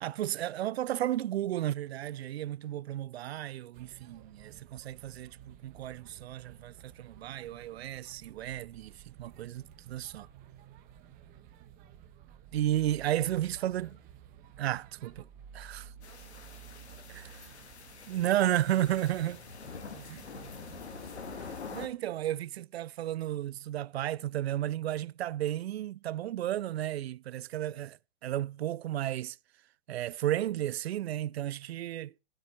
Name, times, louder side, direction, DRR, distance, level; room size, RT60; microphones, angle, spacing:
voice 1, 0.0-10.3 12.5-13.9 14.6-15.3 15.5-15.9 17.1-17.2 18.1-19.4 20.1-20.3 21.7-29.4 29.9-32.1, right 13 dB, 70° right, 0.5 m, -33 dB
voice 2, 2.6-3.0 13.2-14.1 14.6-15.0 15.8-18.2 20.5-21.1, left 3 dB, 20° left, 6.6 m, -63 dB
sound 1, 3.7-21.6, right 9 dB, 25° right, 1.2 m, -53 dB
sound 2, 16.0-21.9, left 5 dB, 85° left, 2.0 m, -45 dB
15.0 x 7.7 x 4.2 m
hypercardioid pair, 140°, 32 cm